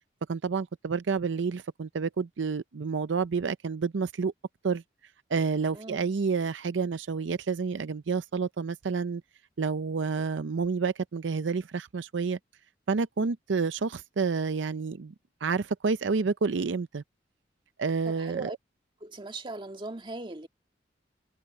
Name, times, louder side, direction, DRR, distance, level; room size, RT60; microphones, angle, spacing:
voice 1, 0.3-4.3 4.6-4.8 5.3-9.2 9.6-12.4 12.9-15.1 15.4-17.0 17.8-18.5, right 5 dB, 80° right, 0.5 m, -29 dB
voice 2, 5.7-6.1 18.1-18.6 19.0-20.5, right 2 dB, 25° right, 1.9 m, -39 dB
head